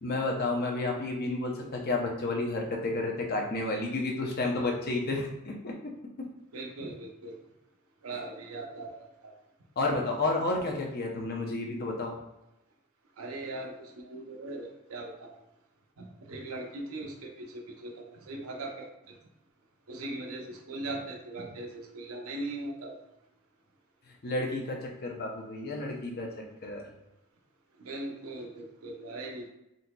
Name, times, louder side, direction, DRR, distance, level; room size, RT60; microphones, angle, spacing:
voice 1, 0.0-5.9 9.8-12.1 24.2-26.9, left 2 dB, 45° left, 1 dB, 0.6 m, -31 dB
voice 2, 6.5-7.4 8.0-9.0 13.2-15.4 16.0-19.2 19.9-23.0 27.8-29.5, right 2 dB, 75° right, 2 dB, 0.6 m, -40 dB
3.9 x 2.8 x 2.2 m, 0.89 s
head